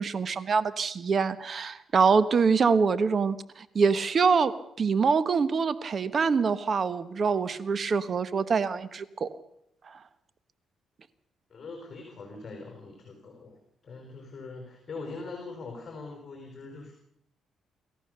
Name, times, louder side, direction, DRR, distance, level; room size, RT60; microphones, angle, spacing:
voice 1, 0.0-9.3 9.9-10.0, right 5 dB, 45° right, 15 dB, 1.1 m, -25 dB
voice 2, 11.5-16.9, left 3 dB, 40° left, 3 dB, 5.3 m, -42 dB
28.0 x 14.5 x 6.7 m, 0.76 s
cardioid pair, 90°, 0 cm